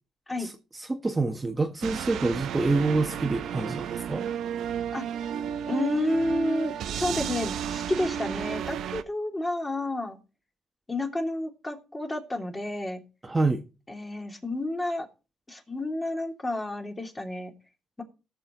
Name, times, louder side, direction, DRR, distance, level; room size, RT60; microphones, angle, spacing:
voice 1, 0.4-4.3 13.2-13.6, right 3 dB, 20° right, 1.6 m, -27 dB
sound 1, 1.8-9.0, right 8 dB, 75° right, 1.0 m, -32 dB
voice 2, 5.7-10.2 10.9-13.0 13.9-15.1 15.5-17.5, left 2 dB, 20° left, 3.2 m, -30 dB
18.5 x 6.8 x 4.0 m
cardioid pair, 90°, 0 cm